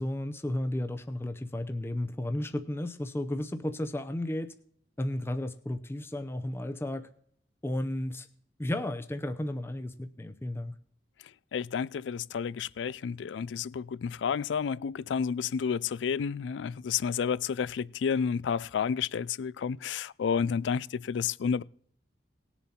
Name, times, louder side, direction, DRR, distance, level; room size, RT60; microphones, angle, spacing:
voice 1, 0.0-4.5 5.0-7.1 7.6-8.3 8.6-10.7, left 1 dB, 15° left, 0.5 m, -33 dB
voice 2, 11.5-21.6, left 6 dB, 90° left, 0.4 m, -31 dB
19.0 x 7.1 x 4.3 m
head